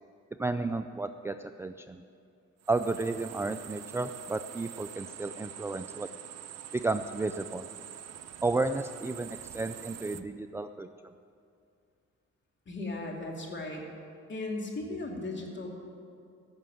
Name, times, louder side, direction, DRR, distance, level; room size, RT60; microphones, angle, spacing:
voice 1, 0.4-2.0 2.7-6.1 6.7-7.7 8.4-11.1, right 3 dB, 10° right, 8 dB, 0.3 m, -32 dB
sound 1, 2.6-10.2, right 10 dB, 55° right, 0.7 m, -45 dB
voice 2, 12.7-13.8 14.3-15.7, left 2 dB, 40° left, 0 dB, 2.7 m, -36 dB
15.0 x 6.3 x 9.1 m, 2.4 s
cardioid pair, 90°, 30 cm